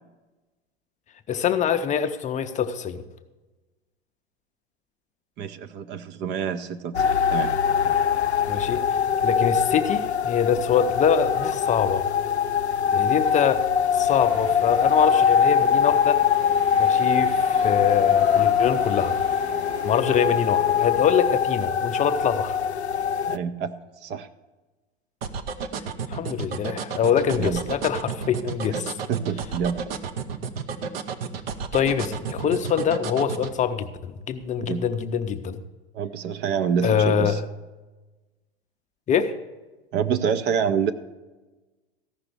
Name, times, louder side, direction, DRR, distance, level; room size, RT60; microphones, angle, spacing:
voice 1, 1.3-3.0 8.5-8.9 9.2-12.0 12.9-13.7 13.9-16.2 16.8-19.2 19.8-22.6 26.1-28.9 31.7-35.6 36.8-37.4 39.1-39.3, left 7 dB, 25° left, 8 dB, 0.6 m, -24 dB
voice 2, 5.4-7.5 23.3-23.7 24.0-24.3 27.4-27.6 28.7-28.8 29.1-29.8 34.7-34.8 35.9-37.4 39.9-40.9, right 7 dB, 35° right, 10 dB, 0.6 m, -27 dB
sound 1, 6.9-23.4, left 7 dB, 85° left, 0.5 m, -22 dB
sound 2, 14.0-21.0, right 2 dB, 80° right, 3.2 m, -41 dB
sound 3, 25.2-33.5, right 6 dB, 65° right, 0.9 m, -31 dB
14.5 x 5.8 x 6.7 m, 1.2 s
figure-of-eight pair, 90°, 33 cm